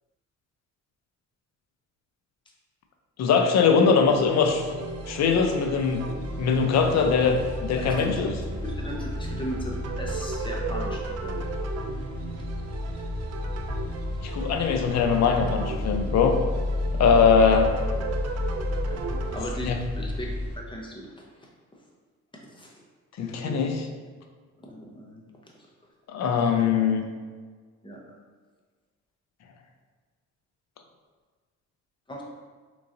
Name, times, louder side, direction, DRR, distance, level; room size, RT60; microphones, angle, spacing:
voice 1, 3.2-4.8 5.1-6.0 6.4-8.3 14.2-16.3 17.0-17.7 19.6-19.8 23.2-23.9 26.1-27.0, left 5 dB, 60° left, 4 dB, 0.5 m, -21 dB
sound 1, 4.1-20.6, left 2 dB, 15° right, 1.2 m, -32 dB
sound 2, 4.1-19.4, right 5 dB, 55° right, 0.4 m, -37 dB
voice 2, 7.8-8.2 8.6-11.4 18.9-20.3 20.6-21.8 22.5-22.7 23.2-23.7 24.6-25.2 27.8-28.2 32.1-32.2, equal, 15° left, -1 dB, 0.7 m, -38 dB
3.7 x 3.0 x 2.5 m, 1.5 s
cardioid pair, 90°, 30 cm